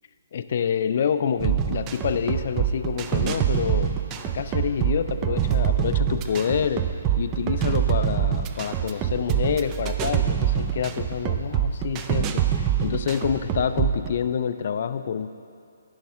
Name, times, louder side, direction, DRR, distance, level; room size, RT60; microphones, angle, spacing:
voice 1, 0.3-3.9 4.3-6.9 7.2-15.3, left 7 dB, 50° left, 11 dB, 0.3 m, -27 dB
sound 1, 1.4-14.1, right 10 dB, 25° right, 0.4 m, -25 dB
9.8 x 5.6 x 3.6 m, 2.4 s
figure-of-eight pair, 135°, 0 cm